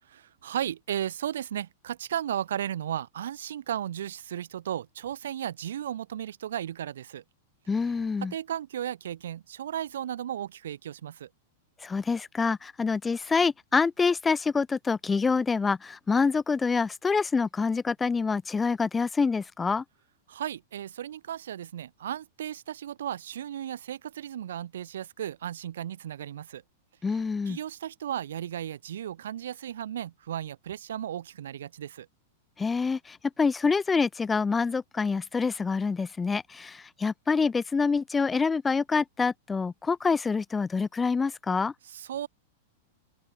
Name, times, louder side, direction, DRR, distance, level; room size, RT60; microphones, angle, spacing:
voice 1, 0.4-7.2 8.3-11.3 20.3-26.6 27.5-32.1 41.8-42.3, right 10 dB, 85° right, 1.4 m, -35 dB
voice 2, 7.7-8.3 11.8-19.8 27.0-27.6 32.6-41.7, left 4 dB, 10° left, 0.9 m, -26 dB
open air
supercardioid pair, 150°, 0 cm